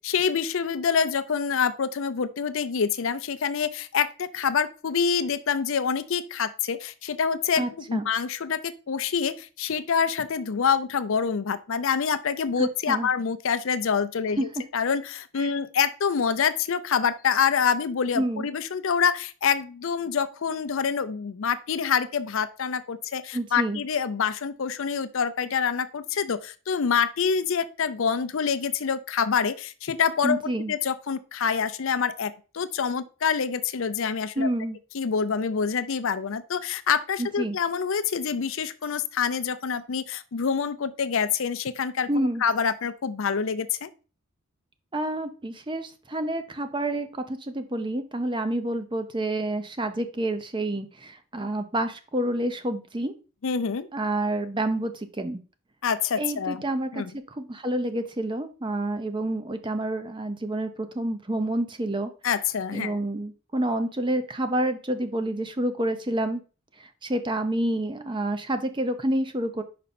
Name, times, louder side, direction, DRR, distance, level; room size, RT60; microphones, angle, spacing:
voice 1, 0.0-14.5 14.7-34.5 34.9-42.1 42.4-43.9 53.4-53.9 55.8-56.6 56.9-57.1 62.2-63.0, left 6 dB, 60° left, 13 dB, 0.5 m, -26 dB
voice 2, 7.6-8.1 12.6-13.1 14.4-14.5 15.4-15.5 18.1-18.5 23.3-23.8 30.2-30.7 34.4-34.8 37.2-37.6 42.1-42.4 44.9-53.1 53.9-55.4 56.1-62.1 62.7-66.4 67.0-69.6, right 1 dB, 20° right, 9 dB, 0.6 m, -28 dB
5.4 x 5.1 x 4.2 m, 0.35 s
head